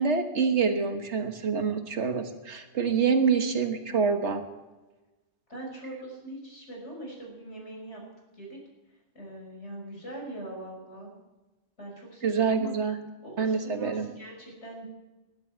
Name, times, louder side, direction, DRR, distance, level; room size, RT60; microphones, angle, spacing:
voice 1, 0.0-4.4 12.2-13.0 13.4-14.1, right 5 dB, 80° right, 6 dB, 1.7 m, -26 dB
voice 2, 5.5-8.0 8.3-8.6 9.1-11.1 11.8-12.7 13.2-14.9, right 1 dB, 80° left, -1 dB, 5.8 m, -41 dB
20.5 x 11.5 x 4.5 m, 1.1 s
omnidirectional pair, 1.2 m